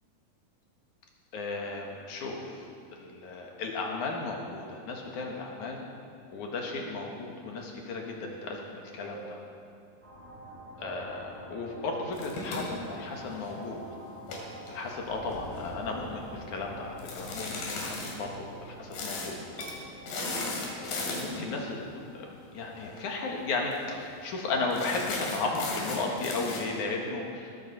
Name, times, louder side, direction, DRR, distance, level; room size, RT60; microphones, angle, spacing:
voice 1, 1.3-5.8 6.3-9.4 10.8-13.8 14.7-19.4 19.6-19.8 20.2-27.5, left 3 dB, 60° left, 0 dB, 2.9 m, -35 dB
sound 1, 8.2-10.0 10.8-14.0 14.3-16.7 17.0-17.1 17.8-17.9 18.7-18.9 19.5-19.6 20.5-20.8, right 4 dB, 35° right, 2.9 m, -51 dB
sound 2, 10.0-24.2, equal, 15° right, 2.3 m, -47 dB
sound 3, 12.1-13.7 14.2-15.7 17.0-18.1 18.9-19.3 19.6-19.7 20.1-21.5 22.8-23.0 23.3-23.4 23.7-24.1 24.7-26.6, left 3 dB, 85° left, 4.1 m, -36 dB
19.0 x 14.0 x 4.2 m, 2.5 s
omnidirectional pair, 4.1 m